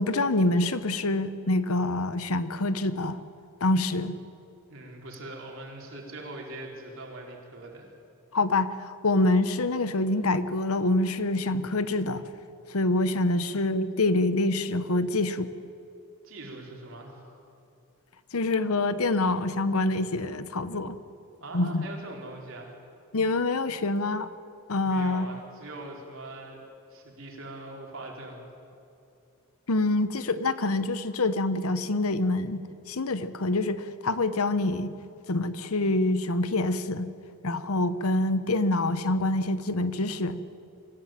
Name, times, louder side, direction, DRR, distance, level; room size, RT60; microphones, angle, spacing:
voice 1, 0.0-3.2 3.6-4.2 8.3-12.2 12.7-15.5 18.3-21.0 21.5-21.8 23.1-24.3 24.7-25.3 29.7-34.9 35.3-37.1 37.4-40.4, left 2 dB, 75° left, 13 dB, 1.0 m, -26 dB
voice 2, 4.7-7.9 16.2-17.4 21.4-22.7 24.8-26.6 26.9-28.5, right 2 dB, 60° right, 0 dB, 4.4 m, -42 dB
24.5 x 15.5 x 9.1 m, 2.7 s
head